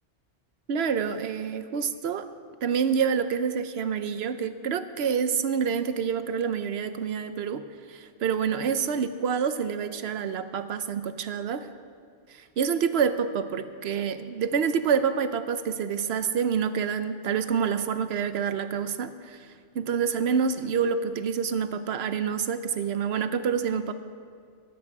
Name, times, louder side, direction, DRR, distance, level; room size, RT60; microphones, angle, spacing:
voice 1, 0.7-2.3 2.6-7.6 7.9-11.7 12.3-19.5 19.7-23.9, right 7 dB, 65° right, 11 dB, 0.9 m, -27 dB
21.5 x 9.2 x 4.8 m, 2.1 s
omnidirectional pair, 1.2 m